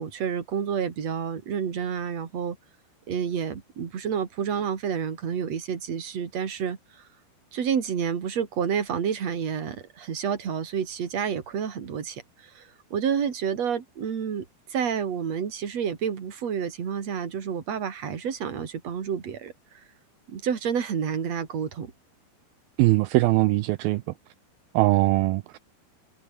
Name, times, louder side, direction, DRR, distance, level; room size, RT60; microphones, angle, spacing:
voice 1, 0.0-2.6 3.1-7.1 7.5-19.5 20.3-21.9, right 7 dB, 45° right, 3.6 m, -29 dB
voice 2, 22.8-24.0 24.7-25.6, right 19 dB, 80° right, 2.4 m, -21 dB
omnidirectional pair, 4.6 m